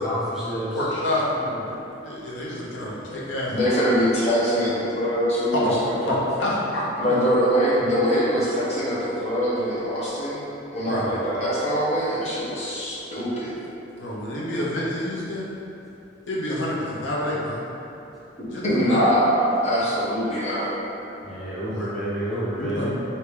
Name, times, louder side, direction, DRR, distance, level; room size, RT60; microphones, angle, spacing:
voice 1, 0.0-0.9 21.2-22.9, equal, ahead, -11 dB, 0.8 m, -29 dB
voice 2, 0.7-1.7 2.0-3.6 5.5-5.7 6.1-7.3 10.9-11.0 14.0-15.5 16.3-17.6 18.5-19.0 21.7-21.9 22.6-23.0, left 1 dB, 80° left, -6 dB, 0.8 m, -27 dB
voice 3, 3.5-5.6 6.0-6.1 7.0-10.4 10.7-13.5 18.6-20.7, equal, 35° left, -9 dB, 1.1 m, -23 dB
3.4 x 2.8 x 4.7 m, 2.9 s
head